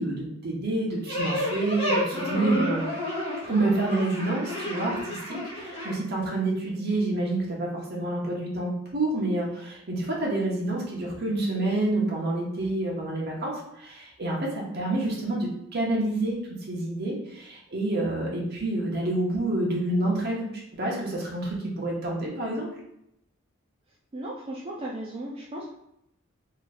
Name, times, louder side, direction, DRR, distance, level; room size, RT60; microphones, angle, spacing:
voice 1, 0.0-2.8 3.5-16.4 16.7-22.7, right 2 dB, 50° right, -3 dB, 1.1 m, -28 dB
sound 1, 1.1-5.9, left 1 dB, 30° left, 0.9 m, -30 dB
voice 2, 24.1-25.7, right 1 dB, 30° right, -5 dB, 0.4 m, -36 dB
3.1 x 2.4 x 4.1 m, 0.79 s
head